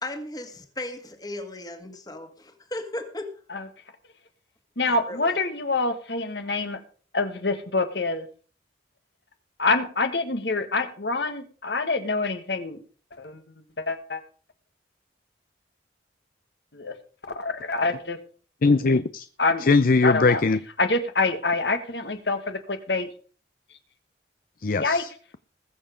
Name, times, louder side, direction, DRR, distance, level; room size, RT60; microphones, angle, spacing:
voice 1, 0.0-3.4 4.8-5.4, left 1 dB, 20° left, 6 dB, 1.8 m, -36 dB
voice 2, 4.8-6.8 7.1-8.3 9.6-12.8 13.2-13.4 13.8-14.2 16.7-16.9 17.3-18.2 19.4-19.7 20.0-20.4 20.8-23.1 24.8-25.0, left 3 dB, 65° left, 8 dB, 1.6 m, -26 dB
voice 3, 18.6-19.2 19.6-20.6 24.6-25.1, left 3 dB, 50° left, 14 dB, 0.5 m, -20 dB
20.5 x 7.0 x 5.1 m, 0.41 s
head